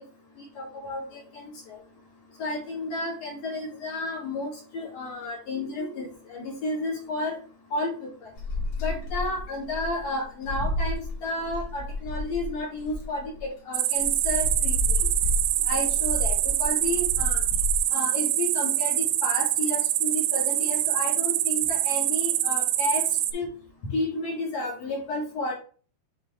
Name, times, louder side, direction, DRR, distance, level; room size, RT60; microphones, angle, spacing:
voice 1, 0.4-1.8 2.4-7.4 7.7-8.3 8.8-15.0 15.6-17.4 17.9-23.0 23.3-23.5 23.9-25.5, left 2 dB, 50° left, -3 dB, 2.1 m, -32 dB
sound 1, 8.4-13.4 14.0-17.8, left 2 dB, 85° left, 1.3 m, -31 dB
sound 2, 13.7-23.3, right 14 dB, 85° right, 2.9 m, -25 dB
8.8 x 3.3 x 3.6 m, 0.40 s
omnidirectional pair, 5.2 m